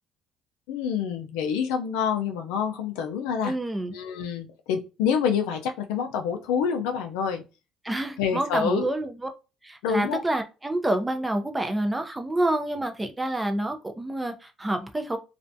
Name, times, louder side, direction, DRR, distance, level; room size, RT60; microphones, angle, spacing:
voice 1, 0.7-3.5 3.9-7.4 8.2-8.9 9.8-10.2, left 7 dB, 85° left, 0.4 m, -27 dB
voice 2, 3.4-3.9 7.8-9.3 9.6-15.2, right 1 dB, 15° right, 0.5 m, -28 dB
2.4 x 2.0 x 2.6 m
supercardioid pair, 80°, 0 cm